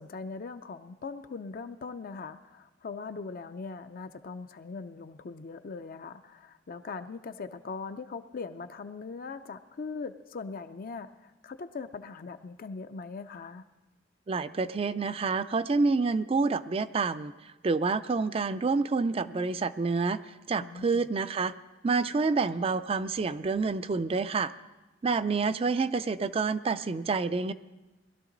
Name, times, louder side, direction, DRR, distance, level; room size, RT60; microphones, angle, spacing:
voice 1, 0.0-13.6 20.6-21.1, left 4 dB, 50° left, 9 dB, 0.5 m, -40 dB
voice 2, 14.3-17.3 17.6-20.2 20.5-21.5 21.8-24.5 25.0-27.5, right 4 dB, 30° right, 13 dB, 0.4 m, -28 dB
20.0 x 12.5 x 3.9 m, 1.1 s
head